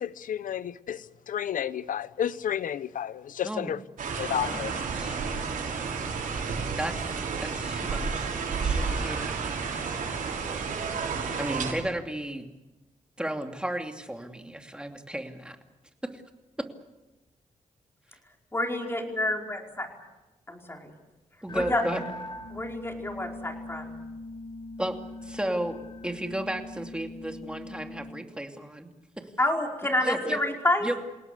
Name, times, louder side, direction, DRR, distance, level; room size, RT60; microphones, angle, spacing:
voice 1, 0.0-3.8 4.2-4.7, left 9 dB, 85° left, 16 dB, 0.9 m, -31 dB
sound 1, 4.0-11.7, right 5 dB, 90° right, 5.9 m, -31 dB
voice 2, 4.4-5.2 6.8-7.1 7.4-8.3 8.6-9.4 11.4-12.5 13.2-15.6 16.0-16.2 21.4-22.0 24.8-25.8 26.0-28.9 29.2-29.3 30.0-30.4 30.8-31.0, right 1 dB, 5° right, 4 dB, 2.7 m, -34 dB
voice 3, 18.5-19.9 20.5-20.9 21.5-21.8 22.5-24.0 29.4-30.9, left 1 dB, 15° left, 2 dB, 4.8 m, -28 dB
sound 2, 21.5-28.1, left 2 dB, 35° left, 4.8 m, -41 dB
28.5 x 18.0 x 8.3 m, 1.0 s
cardioid pair, 100°, 14 cm